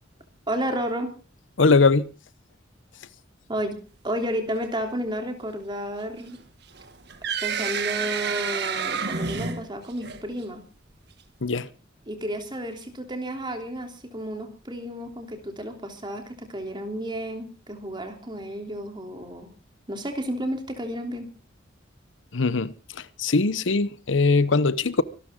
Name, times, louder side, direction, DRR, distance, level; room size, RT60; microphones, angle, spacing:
voice 1, 0.5-1.2 3.5-3.8 4.0-6.4 7.4-10.6 12.1-19.5 19.9-21.3, equal, 25° right, 3.1 m, -32 dB
voice 2, 1.6-2.1 11.4-11.7 22.3-25.0, left 3 dB, 85° left, 0.8 m, -21 dB
sound 1, 6.8-10.4, right 6 dB, 60° right, 1.9 m, -29 dB
25.0 x 12.5 x 3.7 m
head